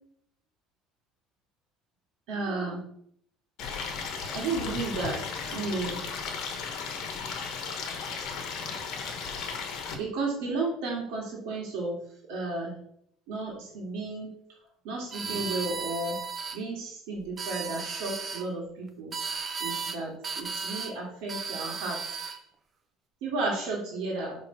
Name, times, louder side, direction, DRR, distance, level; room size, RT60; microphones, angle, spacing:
voice 1, 2.3-2.8 4.3-5.2 5.5-6.0 9.9-12.0 12.3-12.8 13.3-14.3 14.8-16.2 16.5-19.1 19.6-22.0 23.2-24.4, right 3 dB, 75° right, -3 dB, 2.0 m, -33 dB
Stream, 3.6-9.9, left 5 dB, 50° left, 1.1 m, -35 dB
sound 1, 15.1-16.6 17.2-18.4 19.1-20.0 20.2-20.9 21.3-22.4, right 5 dB, 25° right, 0.6 m, -35 dB
5.8 x 3.5 x 5.8 m, 0.67 s
cardioid pair, 175°, 0 cm